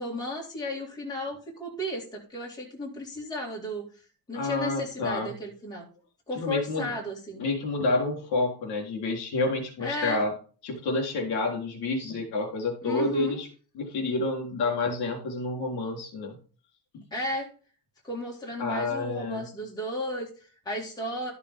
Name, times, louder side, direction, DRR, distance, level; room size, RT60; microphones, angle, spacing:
voice 1, 0.0-4.0 4.3-5.9 6.3-7.4 9.8-10.2 12.8-13.4 17.1-17.5 18.0-21.3, left 1 dB, 10° left, -3 dB, 2.3 m, -34 dB
voice 2, 4.3-5.3 6.4-6.9 7.4-10.3 10.6-13.5 13.7-16.4 16.9-17.0 18.6-19.5, left 2 dB, 55° left, 2 dB, 3.8 m, -29 dB
12.5 x 6.8 x 3.7 m, 0.39 s
cardioid pair, 170°, 45 cm